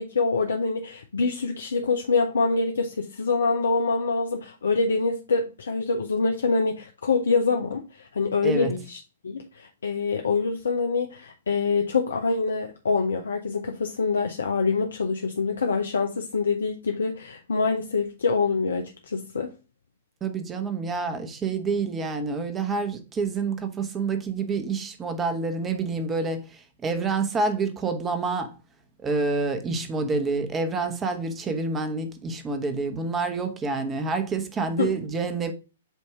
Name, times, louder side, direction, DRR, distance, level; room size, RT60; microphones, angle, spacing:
voice 1, 0.0-19.5 34.8-34.9, left 4 dB, 70° left, 0.7 m, -25 dB
voice 2, 8.4-8.8 20.2-28.5 29.0-35.5, right 4 dB, 20° right, 1.1 m, -28 dB
8.2 x 2.7 x 4.7 m
figure-of-eight pair, 115°, 0 cm